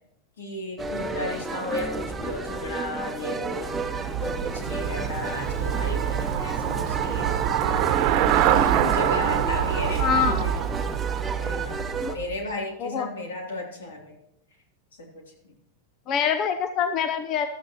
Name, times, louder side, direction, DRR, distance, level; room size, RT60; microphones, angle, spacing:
voice 1, 0.4-3.8 4.2-7.3 8.4-10.6 11.4-11.8 12.1-14.2 14.9-15.5, left 2 dB, 80° left, 1 dB, 3.1 m, -34 dB
sound 1, 0.8-12.1, right 3 dB, 15° right, 1.0 m, -33 dB
Traffic noise roadway noise / Bicycle, 3.3-12.5, right 10 dB, 50° right, 1.0 m, -25 dB
voice 2, 10.0-10.5 12.0-12.2 12.8-13.1 16.1-17.5, left 7 dB, 45° left, 9 dB, 0.7 m, -25 dB
15.5 x 12.5 x 3.0 m, 0.80 s
hypercardioid pair, 100°, 0 cm